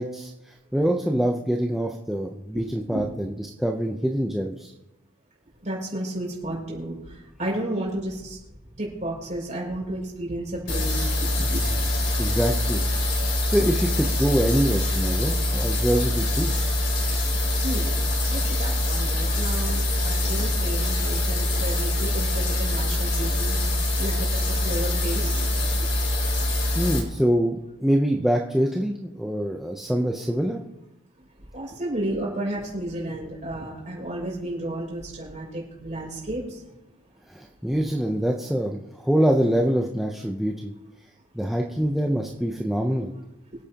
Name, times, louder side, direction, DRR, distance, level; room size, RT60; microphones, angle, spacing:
voice 1, 0.0-4.7 12.2-12.8 13.2-16.5 26.4-30.6 37.3-40.7 41.3-43.1, equal, ahead, 0 dB, 0.7 m, -25 dB
voice 2, 2.5-3.1 5.6-8.4 8.8-11.6 17.6-17.9 18.3-25.4 25.8-25.9 31.5-36.6 42.8-42.9, right 1 dB, 35° right, -3 dB, 6.0 m, -32 dB
sound 1, 10.7-27.0, left 1 dB, 55° left, 3.4 m, -24 dB
25.5 x 8.7 x 2.9 m, 0.91 s
head